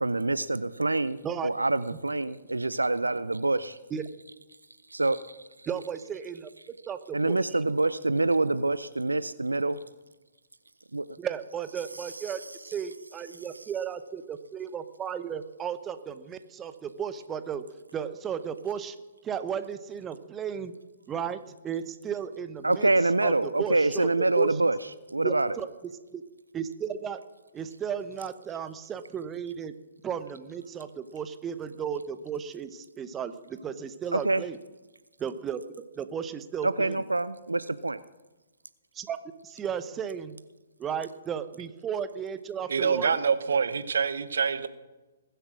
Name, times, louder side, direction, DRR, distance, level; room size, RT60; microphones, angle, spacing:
voice 1, 0.0-1.2 1.4-3.8 4.9-5.4 7.1-9.8 10.9-11.1 22.6-25.6 34.1-34.4 36.6-38.0, right 2 dB, 85° right, 15 dB, 0.5 m, -26 dB
voice 2, 5.7-6.5 6.9-7.4 11.2-12.4 12.7-17.6 17.9-19.0 19.2-20.7 21.1-21.4 21.6-22.9 23.2-23.3 23.6-24.5 25.2-25.7 26.1-26.2 26.5-27.2 27.5-29.7 30.0-34.6 35.2-35.6 36.0-37.0 38.9-39.2 39.4-40.4 40.8-43.1, right 8 dB, 20° right, 11 dB, 0.8 m, -34 dB
voice 3, 42.7-44.7, right 6 dB, 65° right, 13 dB, 1.0 m, -26 dB
20.5 x 8.1 x 6.2 m, 1.1 s
figure-of-eight pair, 125°, 0 cm